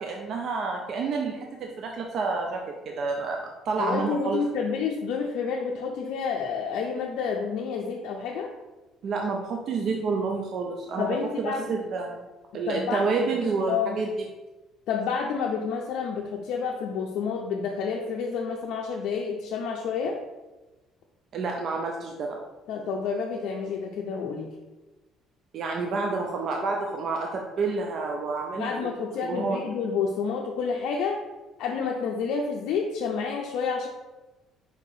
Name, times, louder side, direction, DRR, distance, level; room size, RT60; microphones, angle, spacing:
voice 1, 0.0-4.4 9.0-11.1 11.4-12.2 12.5-14.1 21.3-22.4 25.5-28.9 29.2-29.6, right 4 dB, 50° right, 2 dB, 0.4 m, -29 dB
voice 2, 3.8-8.5 11.0-11.7 12.7-13.0 13.7-14.0 14.9-20.2 22.7-24.5 28.5-31.2 31.6-33.9, left 5 dB, 75° left, 0 dB, 0.4 m, -29 dB
4.6 x 2.7 x 4.0 m, 1.1 s
cardioid pair, 130°, 0 cm